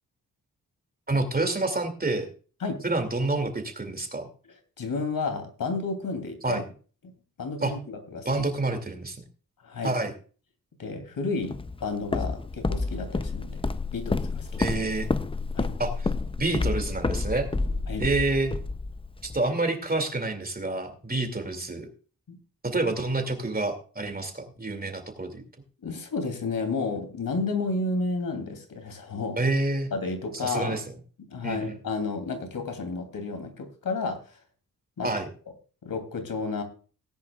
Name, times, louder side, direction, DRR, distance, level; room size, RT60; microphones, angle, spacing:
voice 1, 1.1-2.3 2.8-4.3 6.4-6.6 7.6-7.7 8.3-9.2 9.8-10.1 14.6-15.1 15.8-16.1 16.4-17.5 18.0-18.5 19.2-21.9 22.6-25.4 29.4-29.9 30.3-30.8 31.4-31.8 35.0-35.3, right 2 dB, 25° right, 7 dB, 2.4 m, -28 dB
voice 2, 4.8-6.6 7.0-7.1 7.4-8.3 9.6-10.0 10.8-13.6 13.9-14.7 15.5-15.7 17.9-18.1 22.3-22.4 25.8-29.4 29.9-30.8 31.2-34.2 35.0-35.1 35.8-36.6, left 3 dB, 70° left, 6 dB, 3.0 m, -31 dB
Walk footsteps, 11.5-19.4, left 3 dB, 15° left, 0.5 m, -29 dB
18.5 x 10.5 x 2.4 m, 0.38 s
wide cardioid pair, 95°, 35 cm